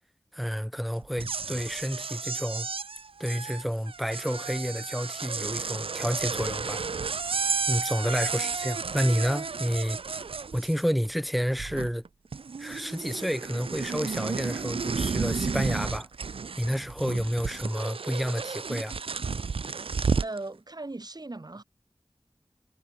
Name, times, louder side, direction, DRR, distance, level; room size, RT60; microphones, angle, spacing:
voice 1, 0.3-2.7 3.2-6.9 7.7-10.0 10.5-12.0 12.6-16.1 16.6-19.0, equal, ahead, 1.1 m, -30 dB
sound 1, 1.0-11.1 11.3-12.1 12.3-20.4, right 5 dB, 70° right, 0.5 m, -32 dB
voice 2, 20.2-21.6, right 2 dB, 45° right, 1.6 m, -38 dB
wide cardioid pair, 40°, 10 cm